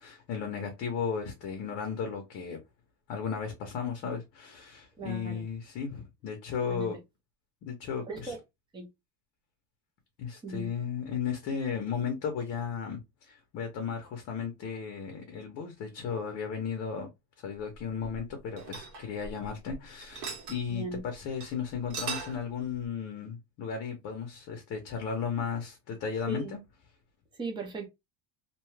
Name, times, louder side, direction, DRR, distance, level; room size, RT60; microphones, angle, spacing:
voice 1, 0.0-2.6 3.1-7.0 7.6-8.4 10.2-17.1 17.4-26.6, left 6 dB, 40° left, 0.6 m, -35 dB
voice 2, 5.0-5.3 6.7-6.9 8.1-8.4 8.7-8.9 10.4-10.7 20.8-21.0 26.3-26.4 27.4-27.9, right 2 dB, 10° right, 0.5 m, -37 dB
sound 1, 17.7-19.7 20.0-20.6 21.0-21.1 21.4-21.5 21.8-22.4, right 4 dB, 85° right, 1.4 m, -39 dB
2.7 x 2.2 x 3.1 m
cardioid pair, 175°, 42 cm